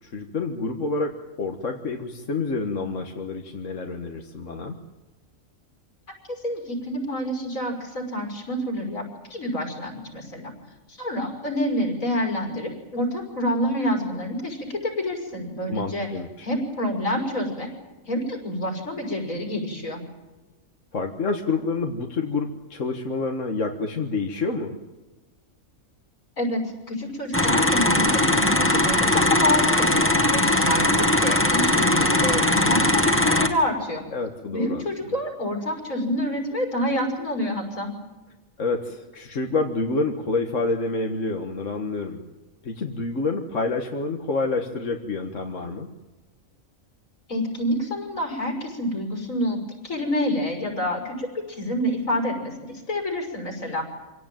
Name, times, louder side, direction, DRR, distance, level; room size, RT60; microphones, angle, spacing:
voice 1, 0.0-4.8 15.7-16.5 20.9-24.8 34.1-34.8 38.6-42.3 42.6-45.9, left 3 dB, 65° left, 2 dB, 1.9 m, -28 dB
voice 2, 6.3-9.0 9.3-10.5 10.9-16.1 16.4-17.7 18.1-20.0 26.4-34.0 34.5-37.9 47.3-49.6 49.8-54.1, left 1 dB, 90° left, 3 dB, 6.2 m, -27 dB
sound 1, 27.3-33.5, left 1 dB, 10° left, 2.1 m, -20 dB
26.5 x 18.0 x 9.2 m, 1.2 s
omnidirectional pair, 1.4 m